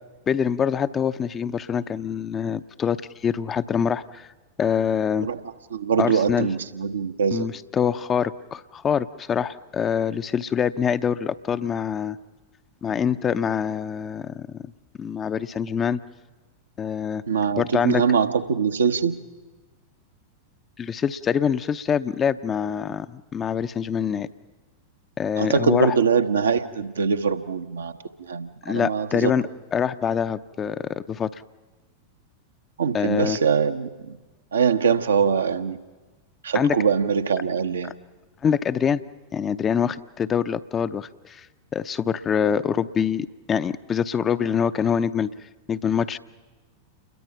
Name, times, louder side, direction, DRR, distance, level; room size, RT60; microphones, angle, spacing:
voice 1, 0.3-4.3 4.6-5.3 6.0-6.5 7.3-12.2 12.8-14.6 15.0-16.0 16.8-17.2 17.6-18.0 20.8-24.3 25.2-26.0 28.6-29.4 29.7-31.4 32.9-33.4 36.5-36.8 38.4-39.0 39.3-41.5 41.7-45.3 45.7-46.2, left 7 dB, 25° left, 12 dB, 0.7 m, -25 dB
voice 2, 5.7-7.4 17.3-19.1 25.4-27.9 28.2-29.3 32.8-34.2 34.5-35.8 36.4-37.9, right 6 dB, 70° right, 8 dB, 1.1 m, -23 dB
29.0 x 22.0 x 5.8 m, 1.3 s
figure-of-eight pair, 90°, 0 cm